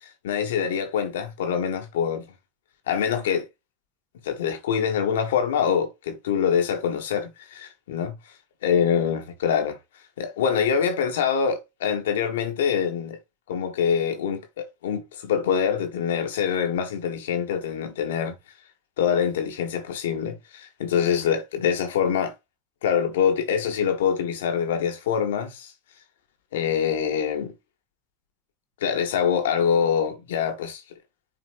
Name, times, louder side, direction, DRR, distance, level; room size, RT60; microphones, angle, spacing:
voice 1, 0.2-2.3 2.9-3.5 4.2-8.2 8.6-9.8 10.2-13.2 13.5-18.3 19.0-22.3 22.8-25.7 26.5-27.5 28.8-30.8, left 7 dB, 80° left, 1.5 m, -25 dB
10.0 x 4.1 x 2.6 m
hypercardioid pair, 80°, 0 cm